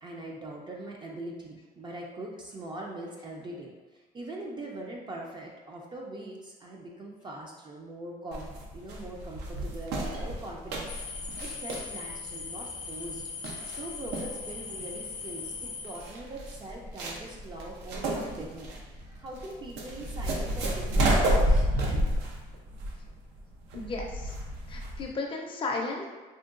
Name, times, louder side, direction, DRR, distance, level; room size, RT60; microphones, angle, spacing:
voice 1, 0.0-13.2 13.6-18.7 19.0-22.0, right 1 dB, 25° right, -1 dB, 0.4 m, -42 dB
sound 1, 8.3-25.1, right 1 dB, 85° right, 0.6 m, -31 dB
sound 2, 10.9-16.0, left 5 dB, 75° left, 0.5 m, -39 dB
voice 2, 23.7-24.3 24.7-26.0, left 3 dB, 30° left, 0 dB, 0.5 m, -34 dB
3.7 x 2.2 x 2.4 m, 1.3 s
cardioid pair, 110°, 17 cm